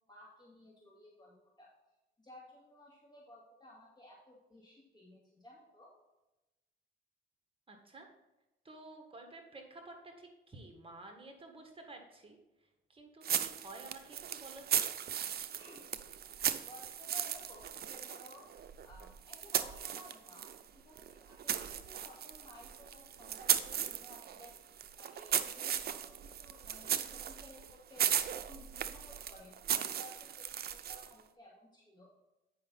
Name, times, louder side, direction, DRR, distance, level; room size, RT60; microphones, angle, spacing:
voice 1, 0.0-1.7 2.2-5.9 15.6-15.9 16.7-18.5 18.8-32.1, left 1 dB, 20° left, -4 dB, 2.0 m, -56 dB
voice 2, 7.7-8.1 8.6-14.9, right 2 dB, 25° right, 3 dB, 1.6 m, -52 dB
sound 1, 13.2-20.6 21.0-31.2, right 9 dB, 50° right, 0.6 m, -37 dB
8.9 x 5.6 x 4.1 m, 1.0 s
cardioid pair, 90°, 20 cm